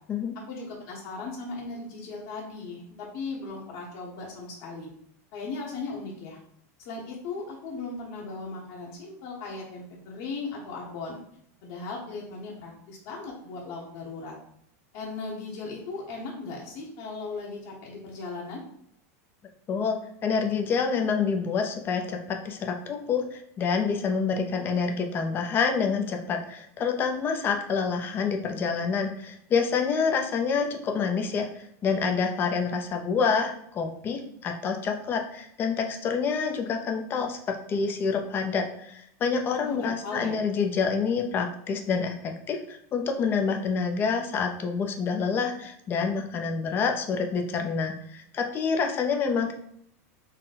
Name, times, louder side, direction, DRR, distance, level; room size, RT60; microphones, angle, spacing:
voice 1, 0.5-4.9 5.3-6.4 6.8-11.2 11.6-14.3 14.9-18.6 39.6-40.3, left 3 dB, 55° left, -3 dB, 1.0 m, -37 dB
voice 2, 19.7-49.5, left 5 dB, 25° left, 4 dB, 0.5 m, -27 dB
3.9 x 2.2 x 4.1 m, 0.72 s
supercardioid pair, 150°, 8 cm